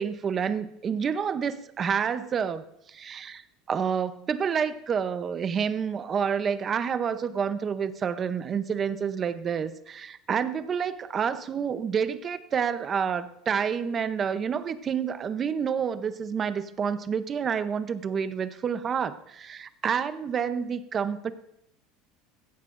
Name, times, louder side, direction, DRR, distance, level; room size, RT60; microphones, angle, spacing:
voice 1, 0.0-3.4 3.7-21.3, right 7 dB, 25° right, 12 dB, 0.7 m, -29 dB
16.5 x 15.0 x 2.6 m, 0.78 s
cardioid pair, 160°, 0 cm